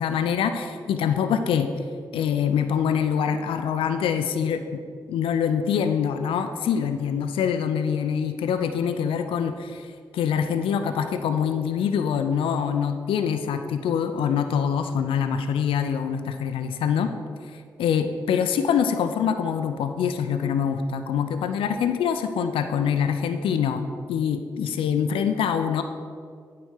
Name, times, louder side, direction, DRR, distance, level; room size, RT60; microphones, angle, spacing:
voice 1, 0.0-1.7 2.1-4.6 5.1-17.1 17.5-23.8 24.1-25.8, left 7 dB, 85° left, 8 dB, 0.5 m, -25 dB
9.1 x 4.3 x 6.4 m, 2.2 s
supercardioid pair, 45°, 9 cm